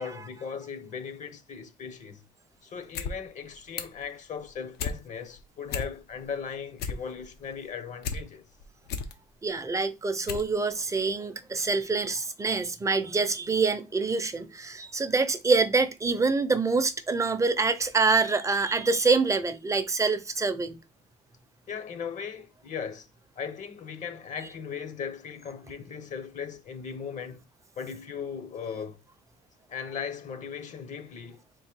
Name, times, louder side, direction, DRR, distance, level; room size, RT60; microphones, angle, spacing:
voice 1, 0.0-2.2 2.6-8.5 21.7-23.1 23.4-27.4 27.8-29.0 29.7-31.4, left 6 dB, 45° left, 0.9 m, -38 dB
sound 1, 2.8-3.1 3.4-4.0 4.4-5.0 5.4-5.5 5.7-6.2 6.6-8.2 8.6-9.1 9.7-9.8 10.2-10.5 10.8-10.9, left 6 dB, 75° left, 0.8 m, -34 dB
voice 2, 9.4-20.8, right 4 dB, 20° right, 0.6 m, -26 dB
3.8 x 2.6 x 4.6 m
cardioid pair, 110°, 17 cm